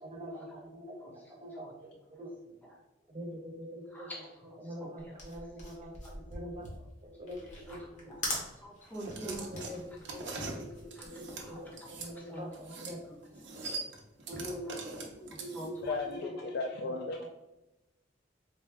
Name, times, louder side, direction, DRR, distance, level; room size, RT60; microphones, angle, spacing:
voice 1, 0.0-1.9 2.2-2.3 3.1-4.2 4.6-7.4 7.7-7.9 9.2-13.0 14.3-15.9 16.3-17.3, equal, 30° right, 0 dB, 0.7 m, -44 dB
voice 2, 3.9-4.3 7.7-7.8 8.0-9.5 11.0-11.9 12.1-12.4 13.1-13.2 14.7-14.8 15.5-15.7, right 1 dB, 10° left, -3 dB, 0.9 m, -46 dB
sound 1, 5.0-11.7, left 1 dB, 40° left, 1.2 m, -42 dB
sound 2, 8.9-12.1 12.5-13.0 13.2-15.9, right 3 dB, 65° right, 0.7 m, -42 dB
voice 3, 15.8-17.3, left 3 dB, 60° left, 3 dB, 0.3 m, -35 dB
4.1 x 2.2 x 3.3 m, 0.99 s
head